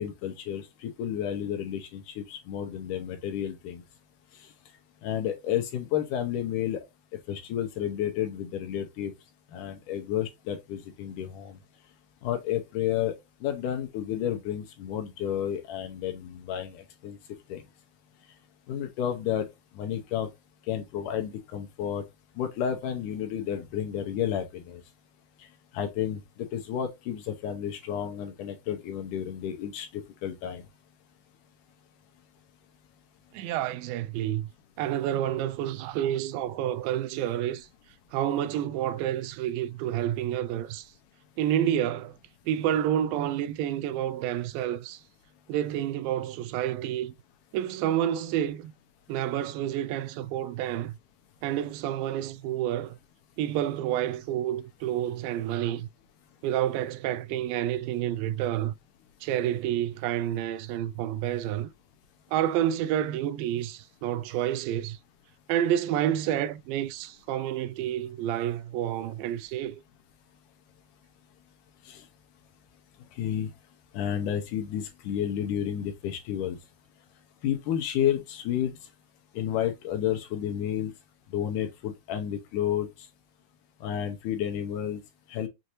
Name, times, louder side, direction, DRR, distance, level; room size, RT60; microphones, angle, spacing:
voice 1, 0.0-3.8 5.0-6.8 7.3-9.1 9.5-11.6 12.2-13.1 13.4-17.2 17.5-17.6 18.7-19.5 19.8-20.3 20.7-22.0 22.4-24.8 25.7-26.2 26.5-30.6 71.9-72.0 73.2-73.5 73.9-76.6 77.4-78.7 79.3-80.9 81.3-82.9 83.8-85.0 85.3-85.5, left 10 dB, 75° left, 2.2 m, -31 dB
voice 2, 33.3-34.5 34.8-37.7 38.1-40.9 41.4-42.2 42.5-45.0 45.5-47.1 47.5-48.7 49.1-50.9 51.4-53.0 53.4-55.9 56.4-58.7 59.2-61.7 62.3-65.0 65.5-69.8, right 11 dB, 85° right, 2.2 m, -29 dB
6.5 x 2.6 x 2.9 m
omnidirectional pair, 4.0 m